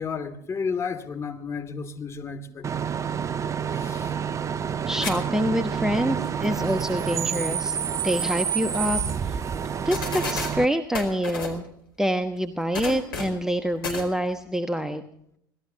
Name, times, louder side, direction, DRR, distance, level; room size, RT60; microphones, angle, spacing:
voice 1, 0.0-2.9 3.7-4.2, left 5 dB, 25° left, 5 dB, 2.7 m, -32 dB
Bus / Idling / Screech, 2.6-10.6, right 7 dB, 25° right, 0.7 m, -28 dB
voice 2, 4.9-7.8 8.0-9.4 9.8-11.7 12.0-15.0, equal, 5° right, 8 dB, 1.2 m, -26 dB
sound 1, 5.0-5.1 5.5-5.6 8.3-8.4 8.7-8.8 9.6-9.7 9.9-10.5 10.9-11.6 12.7-13.4 13.8-14.1, left 4 dB, 75° left, 4.7 m, -31 dB
26.0 x 18.5 x 2.9 m, 0.72 s
figure-of-eight pair, 75°, 12 cm